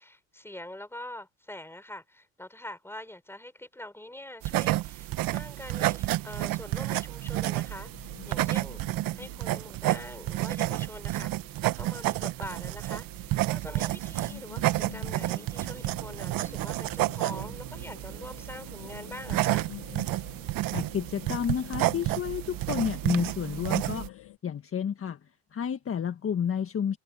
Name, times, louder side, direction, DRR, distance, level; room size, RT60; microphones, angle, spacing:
voice 1, 0.0-8.8 9.1-11.3 11.7-19.7, left 1 dB, 5° left, 6.6 m, -44 dB
sound 1, 4.4-24.1, right 17 dB, 65° right, 1.4 m, -30 dB
sound 2, 7.6-24.4, left 16 dB, 65° left, 5.1 m, -49 dB
voice 2, 20.7-25.2 25.5-27.0, left 8 dB, 35° left, 1.7 m, -31 dB
supercardioid pair, 75°, 36 cm